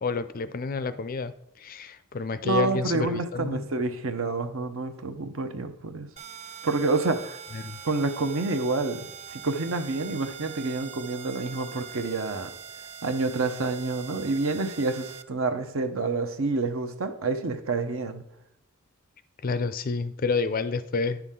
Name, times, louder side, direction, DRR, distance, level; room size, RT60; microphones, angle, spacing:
voice 1, 0.0-3.6 7.5-7.8 19.4-21.2, left 4 dB, 40° left, 12 dB, 0.4 m, -29 dB
voice 2, 2.4-6.1 6.6-7.4 7.8-12.5 13.0-18.2, right 3 dB, 60° right, 8 dB, 0.7 m, -28 dB
sound 1, 6.2-15.2, right 8 dB, 30° right, 0.3 m, -43 dB
10.0 x 5.9 x 3.7 m, 0.80 s
head